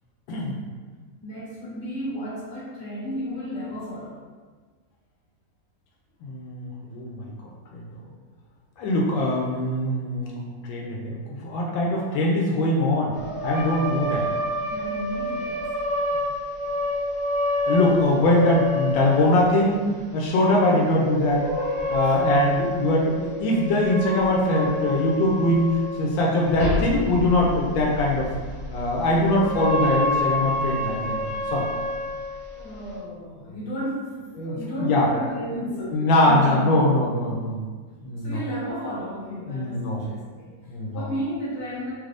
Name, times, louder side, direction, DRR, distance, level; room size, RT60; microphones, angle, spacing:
voice 1, 1.2-4.2 14.6-15.6 20.7-21.0 22.0-22.1 32.5-36.9 38.2-40.5 40.9-41.9, equal, 40° left, -10 dB, 1.5 m, -33 dB
voice 2, 6.2-7.3 7.7-7.8 8.8-13.2 13.4-14.3 17.7-19.9 20.1-21.5 21.9-28.3 28.7-31.7 34.4-35.1 35.8-37.6 38.0-38.4 39.5-40.0 40.7-41.1, left 1 dB, 85° left, -2 dB, 1.3 m, -22 dB
sound 1, 13.1-19.8 20.9-26.1 26.4-33.0, left 1 dB, 20° right, 1.1 m, -28 dB
3.3 x 3.3 x 2.5 m, 1.5 s
omnidirectional pair, 2.0 m